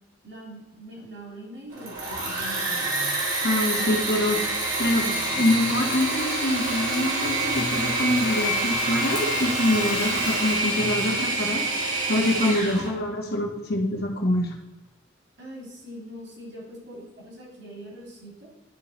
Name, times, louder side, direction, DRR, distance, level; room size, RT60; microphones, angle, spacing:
voice 1, 0.2-2.9 3.6-4.1 15.4-18.5, right 1 dB, 60° right, -3 dB, 2.8 m, -42 dB
Engine / Mechanisms, 1.7-12.9, right 2 dB, 85° right, 2.5 m, -27 dB
voice 2, 3.4-4.4 4.8-11.6 12.1-14.5, left 1 dB, 55° left, 1 dB, 1.5 m, -25 dB
11.0 x 3.8 x 4.1 m, 0.99 s
head